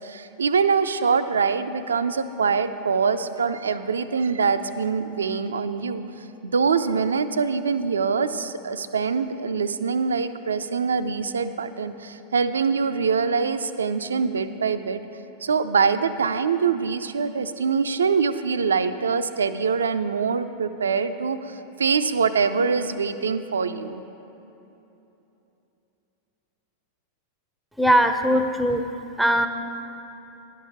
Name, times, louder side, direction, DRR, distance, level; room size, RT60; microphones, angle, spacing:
voice 1, 0.0-6.0 6.4-15.0 15.4-24.0, right 5 dB, 70° right, 11 dB, 0.3 m, -24 dB
voice 2, 27.8-28.8 29.2-29.5, equal, 5° right, 8 dB, 0.5 m, -20 dB
11.0 x 4.7 x 6.8 m, 3.0 s
figure-of-eight pair, 90°, 0 cm